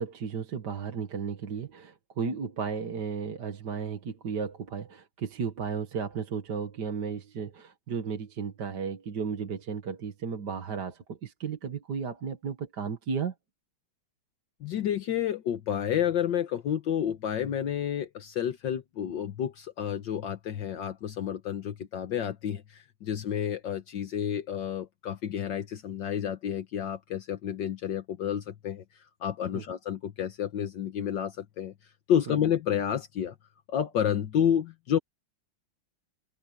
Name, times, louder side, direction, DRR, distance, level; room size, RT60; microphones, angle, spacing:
voice 1, 0.0-13.3 29.5-29.6 32.3-32.4, right 6 dB, 60° right, 2.1 m, -34 dB
voice 2, 14.6-28.8 29.2-31.7 32.1-33.4 33.7-35.0, left 9 dB, 70° left, 1.7 m, -30 dB
omnidirectional pair, 2.2 m